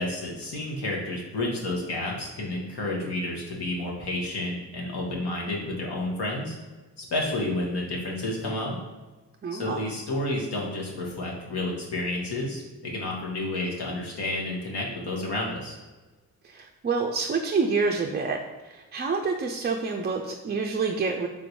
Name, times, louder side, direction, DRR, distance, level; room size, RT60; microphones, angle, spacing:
voice 1, 0.0-6.5 7.0-8.8 9.5-15.8, left 1 dB, 70° left, -2 dB, 1.3 m, -30 dB
voice 2, 9.4-9.8 16.4-21.3, right 4 dB, 25° right, 2 dB, 0.4 m, -28 dB
3.8 x 2.6 x 4.4 m, 1.2 s
cardioid pair, 55°, 41 cm